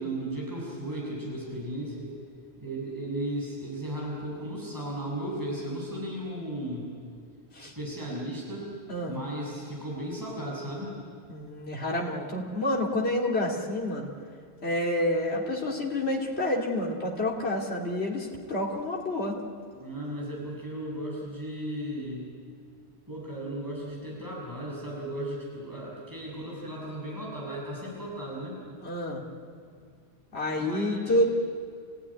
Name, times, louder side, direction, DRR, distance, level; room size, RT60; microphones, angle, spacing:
voice 1, 0.0-2.1 2.6-6.9 7.6-8.7 9.1-11.0 19.8-22.3 23.1-28.6 30.6-31.2, right 1 dB, 20° right, -5 dB, 6.7 m, -35 dB
voice 2, 11.3-14.1 14.6-19.4 28.8-29.2 30.3-31.2, left 1 dB, 75° left, -2 dB, 2.8 m, -28 dB
29.0 x 16.0 x 9.9 m, 2.2 s
omnidirectional pair, 1.1 m